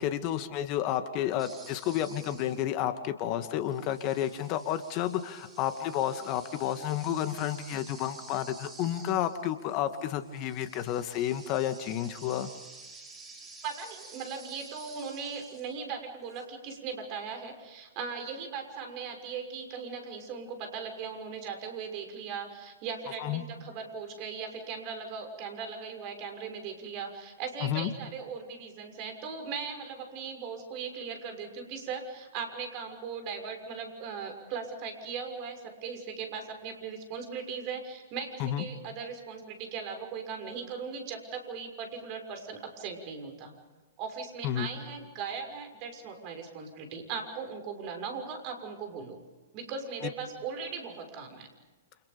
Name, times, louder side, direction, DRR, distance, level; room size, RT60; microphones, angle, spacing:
voice 1, 0.0-12.5 23.2-23.4 27.6-27.9 38.4-38.6 44.4-44.7, left 11 dB, 40° left, 9 dB, 2.2 m, -31 dB
sound 1, 1.4-2.8 3.5-15.8 16.3-16.4, right 3 dB, 15° right, 5.6 m, -51 dB
voice 2, 13.6-43.5 44.0-49.2 49.5-51.5, right 5 dB, 40° right, 5 dB, 6.3 m, -38 dB
30.0 x 28.5 x 5.3 m, 1.2 s
hypercardioid pair, 115°, 0 cm